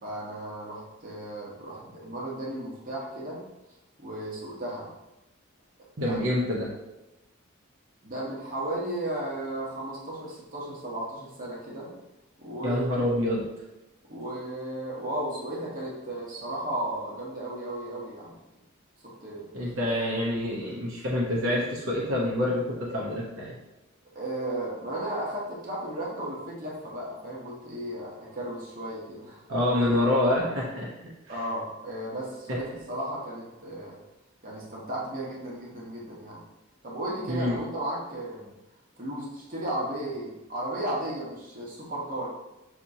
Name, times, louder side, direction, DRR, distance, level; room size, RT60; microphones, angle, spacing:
voice 1, 0.0-3.4 4.0-4.9 6.0-6.2 8.0-11.9 12.4-13.1 14.1-18.4 19.2-19.5 24.1-29.4 31.3-33.9 34.4-36.4 36.8-38.5 39.0-42.3, right 1 dB, 40° right, -4 dB, 1.0 m, -34 dB
voice 2, 6.0-6.7 12.6-13.4 19.5-23.5 29.5-31.1 37.3-37.6, left 1 dB, 65° right, -4 dB, 0.9 m, -27 dB
5.9 x 2.9 x 2.7 m, 0.98 s
head